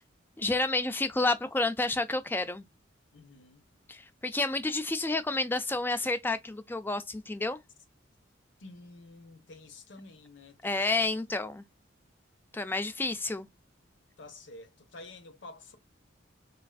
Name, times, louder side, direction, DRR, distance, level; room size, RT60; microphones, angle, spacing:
voice 1, 0.4-2.7 3.9-7.6 10.6-11.6 12.5-13.5, left 2 dB, 10° left, 0.3 m, -30 dB
voice 2, 3.1-3.7 8.6-11.1 14.2-15.8, left 2 dB, 75° left, 0.7 m, -50 dB
3.4 x 2.3 x 2.3 m
head